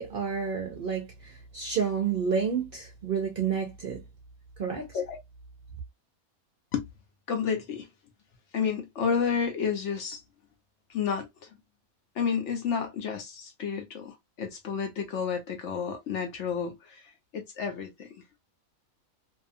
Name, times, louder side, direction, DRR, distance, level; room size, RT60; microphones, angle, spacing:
voice 1, 0.0-4.0 4.6-4.9, right 6 dB, 55° right, 0.6 m, -30 dB
voice 2, 7.3-7.9 8.5-10.2 10.9-11.5 12.2-18.1, left 6 dB, 60° left, 0.9 m, -31 dB
2.7 x 2.3 x 2.5 m
omnidirectional pair, 1.5 m